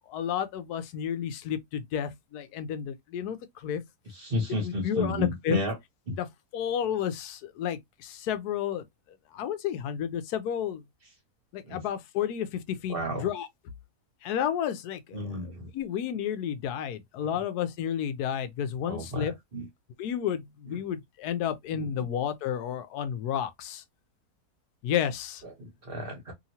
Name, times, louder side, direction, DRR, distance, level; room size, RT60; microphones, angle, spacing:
voice 1, 0.0-3.8 4.6-5.6 6.2-6.3 6.5-8.8 9.3-10.8 11.5-13.5 14.2-19.3 20.0-23.8 24.8-25.4, left 9 dB, 85° left, 1.1 m, -31 dB
voice 2, 4.2-5.7 6.1-6.2 11.6-11.8 12.9-13.3 15.1-15.7 18.8-19.6 21.7-21.8 25.6-26.3, left 1 dB, 45° right, 1.0 m, -32 dB
2.9 x 2.7 x 2.7 m
omnidirectional pair, 1.6 m